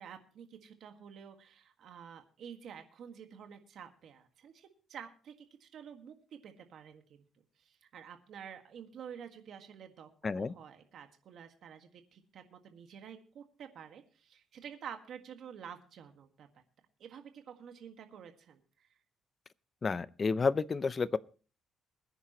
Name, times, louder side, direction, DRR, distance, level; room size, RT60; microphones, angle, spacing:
voice 1, 0.0-5.3 5.6-6.1 6.4-7.2 7.6-16.5 17.0-18.9, right 8 dB, 65° right, 1.7 m, -50 dB
voice 2, 10.2-10.5 19.8-21.2, left 4 dB, 30° left, 0.5 m, -30 dB
22.0 x 10.0 x 3.0 m
cardioid pair, 130°, 0 cm